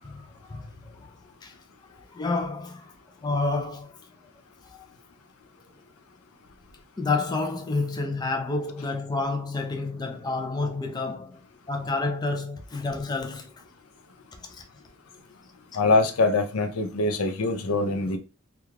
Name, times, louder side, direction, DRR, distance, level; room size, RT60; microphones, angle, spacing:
voice 1, 0.0-1.0 1.4-1.5 1.9-2.9 3.2-4.0 4.7-4.9 7.0-11.4 11.7-13.5 14.5-14.6, left 3 dB, 20° left, 0.3 m, -29 dB
voice 2, 15.7-18.2, left 3 dB, 80° left, 0.5 m, -23 dB
2.3 x 2.3 x 3.1 m
head